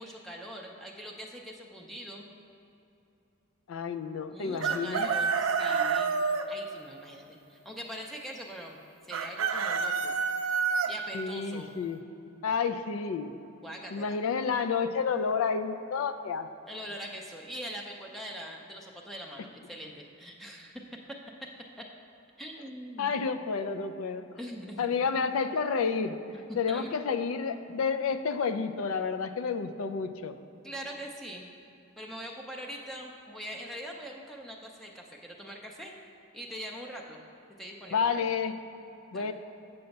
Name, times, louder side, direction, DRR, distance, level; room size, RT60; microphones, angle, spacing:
voice 1, 0.0-2.3 4.3-10.1 10.9-11.7 13.6-14.2 16.7-20.8 21.1-21.2 22.4-23.3 24.4-24.9 26.3-26.4 26.7-26.9 30.6-31.5 32.0-35.9 36.3-37.2 37.6-38.3 39.1-39.3, equal, ahead, -1 dB, 0.5 m, -42 dB
voice 2, 3.7-5.1 11.1-12.0 12.4-13.3 13.9-16.5 23.0-24.2 24.8-26.2 26.5-30.3 37.9-38.5 39.1-39.3, left 5 dB, 85° left, 10 dB, 0.4 m, -30 dB
Chicken rooster, 4.6-6.4 9.1-10.9, right 5 dB, 75° right, 0.4 m, -28 dB
6.9 x 6.7 x 5.2 m, 2.8 s
head